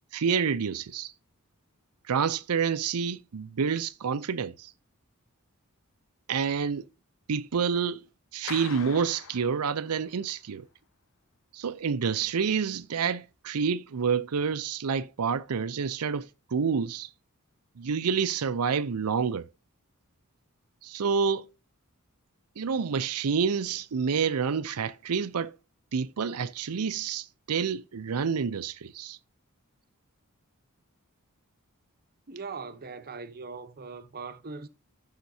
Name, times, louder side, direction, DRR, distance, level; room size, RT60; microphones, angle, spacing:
voice 1, 0.1-1.1 2.1-4.7 6.3-6.9 7.3-8.1 8.3-10.7 11.5-17.1 17.8-19.5 20.8-21.5 22.6-25.5 25.9-29.2, right 6 dB, 80° right, 0.5 m, -28 dB
Clapping, 8.5-10.2, left 9 dB, 65° left, 0.5 m, -43 dB
voice 2, 32.3-34.7, right 4 dB, 45° right, 0.9 m, -40 dB
14.5 x 5.7 x 2.7 m
head